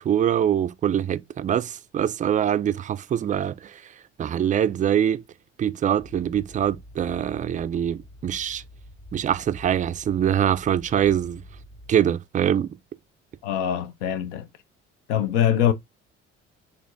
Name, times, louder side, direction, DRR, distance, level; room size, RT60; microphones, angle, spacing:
voice 1, 0.0-3.8 4.2-5.2 5.6-8.6 9.1-11.4 11.9-12.8, right 9 dB, 25° right, 0.3 m, -24 dB
sound 1, 6.0-12.0, left 1 dB, 15° left, 0.9 m, -46 dB
voice 2, 13.4-14.5 15.1-15.7, left 10 dB, 75° left, 0.7 m, -23 dB
4.2 x 3.3 x 2.5 m
hypercardioid pair, 50°, 36 cm